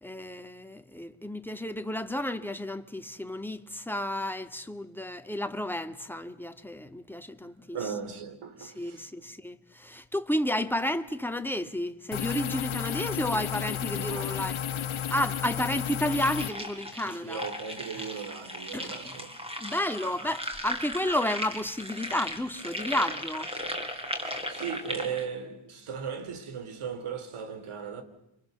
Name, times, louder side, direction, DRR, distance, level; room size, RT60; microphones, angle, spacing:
voice 1, 0.0-7.8 8.6-14.6 15.1-17.4 18.0-18.1 18.7-19.2 19.6-23.5, left 1 dB, 5° left, 1.9 m, -32 dB
voice 2, 7.7-9.1 13.2-13.3 13.9-14.8 17.1-19.3 24.5-28.0, right 6 dB, 85° right, 3.6 m, -37 dB
sound 1, 12.1-16.5, left 9 dB, 70° left, 1.4 m, -32 dB
sound 2, 16.1-25.2, equal, 10° right, 5.4 m, -37 dB
30.0 x 26.5 x 6.9 m
cardioid pair, 80°, 49 cm